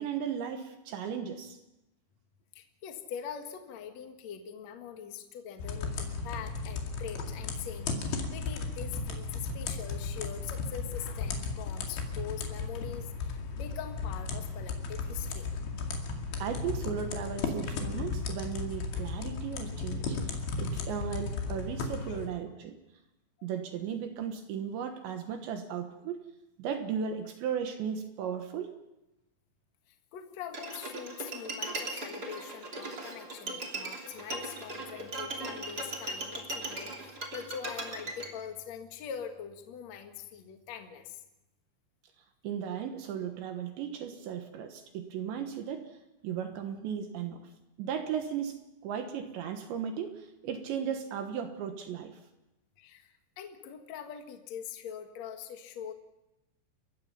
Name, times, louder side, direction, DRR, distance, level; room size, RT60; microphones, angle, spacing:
voice 1, 0.0-1.6 16.4-22.8 23.4-26.2 26.6-28.7 42.4-45.9 46.2-47.5 47.8-52.1, right 8 dB, 70° right, 6 dB, 3.2 m, -36 dB
voice 2, 2.5-15.5 22.0-22.2 29.9-41.2 52.8-55.9, left 8 dB, 85° left, 5 dB, 1.5 m, -43 dB
sound 1, 5.6-22.3, left 4 dB, 65° left, 4.2 m, -35 dB
Bowed string instrument, 30.5-38.3, right 2 dB, 30° right, 2.1 m, -38 dB
29.5 x 15.5 x 5.7 m, 0.92 s
omnidirectional pair, 6.0 m